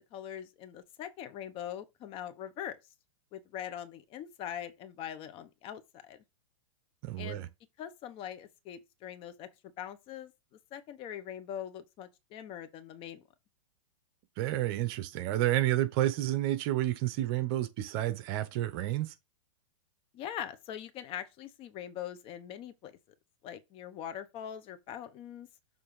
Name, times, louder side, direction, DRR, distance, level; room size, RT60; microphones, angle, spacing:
voice 1, 0.1-2.8 3.3-6.2 7.2-7.4 7.8-9.5 9.8-10.3 10.7-13.2 20.1-23.0 23.4-25.5, left 10 dB, 35° left, 0.9 m, -42 dB
voice 2, 7.0-7.5 14.4-19.1, right 14 dB, 45° right, 0.9 m, -30 dB
6.8 x 3.3 x 4.8 m
hypercardioid pair, 130°, 17 cm